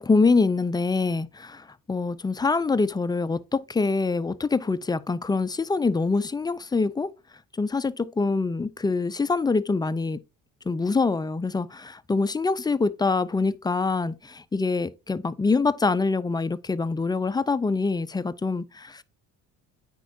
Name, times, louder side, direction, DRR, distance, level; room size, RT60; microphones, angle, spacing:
voice 1, 0.0-7.1 7.6-10.2 10.7-19.0, left 4 dB, 10° left, 0.3 m, -25 dB
9.2 x 4.4 x 2.5 m
cardioid pair, 85°, 34 cm